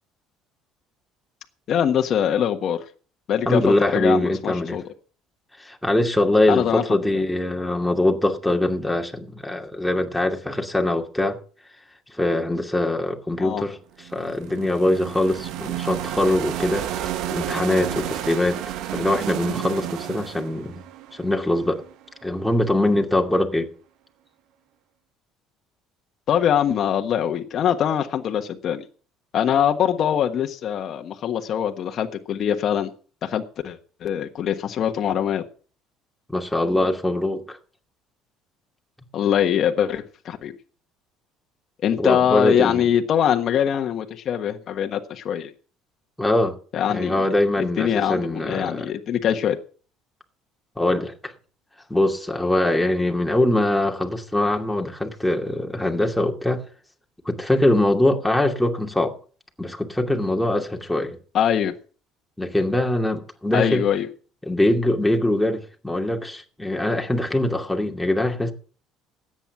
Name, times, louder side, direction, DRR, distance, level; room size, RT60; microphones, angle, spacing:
voice 1, 1.7-2.8 3.3-3.6 3.9-4.8 6.5-6.8 13.4-13.6 26.3-28.8 29.3-32.9 33.2-35.4 39.1-40.5 41.8-45.5 46.7-47.2 47.6-49.6 61.3-61.7 63.5-64.1, left 9 dB, 55° left, 1.4 m, -23 dB
voice 2, 3.5-4.8 5.6-11.4 12.1-16.9 17.3-18.6 18.9-20.8 21.1-21.8 22.2-23.7 36.3-37.6 42.0-42.9 46.2-46.6 46.9-48.9 50.8-51.3 51.9-56.6 57.2-59.1 59.6-61.2 62.4-63.9 64.4-68.5, left 1 dB, 5° left, 2.4 m, -22 dB
sound 1, 14.0-22.0, right 11 dB, 70° right, 1.0 m, -31 dB
13.5 x 9.0 x 6.0 m
supercardioid pair, 85°, 0 cm